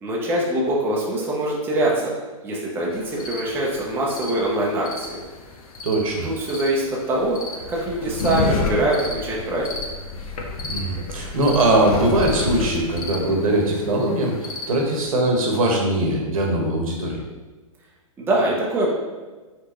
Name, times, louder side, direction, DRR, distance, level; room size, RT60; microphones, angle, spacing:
voice 1, 0.0-2.1 2.4-5.2 6.2-7.4 7.7-9.8 18.2-18.9, right 1 dB, 10° right, -4 dB, 0.7 m, -23 dB
Cricket Chirp, 2.9-15.1, left 3 dB, 90° left, 0.8 m, -31 dB
voice 2, 5.8-6.3 10.6-17.2, right 1 dB, 75° right, 0 dB, 1.3 m, -21 dB
4.7 x 3.5 x 3.0 m, 1.3 s
hypercardioid pair, 145°, 18 cm